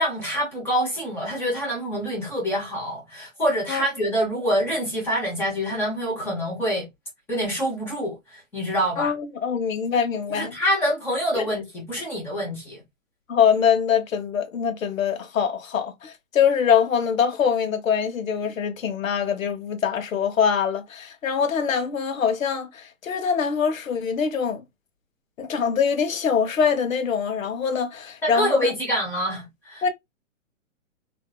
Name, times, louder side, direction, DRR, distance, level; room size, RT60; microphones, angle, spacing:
voice 1, 0.0-6.9 7.3-9.1 10.3-12.8 28.2-29.9, equal, 5° left, 0.7 m, -26 dB
voice 2, 9.0-10.5 11.4-11.5 13.3-24.6 25.4-28.7 29.8-29.9, left 7 dB, 85° left, 1.1 m, -23 dB
3.5 x 2.6 x 2.2 m
hypercardioid pair, 165°, 39 cm